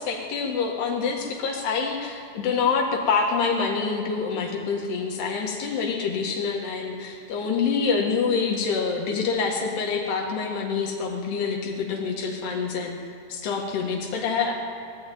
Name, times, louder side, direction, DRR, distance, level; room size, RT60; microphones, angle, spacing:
voice 1, 0.0-13.0 13.3-14.5, left 5 dB, 80° left, 0 dB, 3.8 m, -26 dB
19.5 x 14.5 x 9.3 m, 2.4 s
omnidirectional pair, 4.7 m